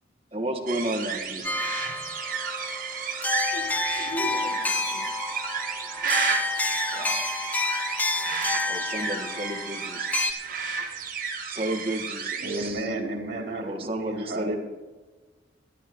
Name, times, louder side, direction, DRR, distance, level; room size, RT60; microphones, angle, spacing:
voice 1, 0.3-1.6 6.9-7.4 8.7-10.4 11.5-12.9 13.6-14.6, right 1 dB, 30° right, 3 dB, 1.5 m, -32 dB
sound 1, 0.7-12.7, right 5 dB, 50° right, 1.6 m, -32 dB
sound 2, 1.4-10.3, left 3 dB, 10° left, 0.5 m, -30 dB
voice 2, 3.5-5.2 7.4-7.5, right 1 dB, 50° left, -2 dB, 5.4 m, -39 dB
voice 3, 12.4-14.6, right 2 dB, 70° right, -1 dB, 3.0 m, -32 dB
22.5 x 11.0 x 3.1 m, 1.3 s
head